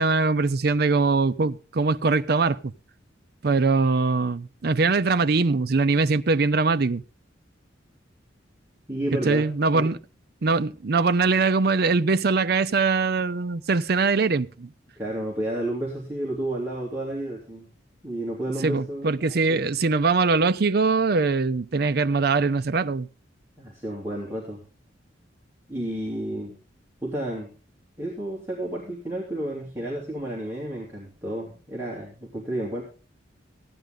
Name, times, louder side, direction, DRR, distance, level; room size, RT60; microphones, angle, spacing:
voice 1, 0.0-2.7 3.4-7.0 9.2-10.0 10.4-14.7 18.6-23.1, right 4 dB, 55° right, 0.5 m, -22 dB
voice 2, 8.9-9.9 15.0-17.7 18.0-19.6 23.6-24.6 25.7-26.6 27.0-27.5 28.0-32.8, right 1 dB, 10° right, 2.9 m, -31 dB
15.5 x 10.5 x 3.7 m
head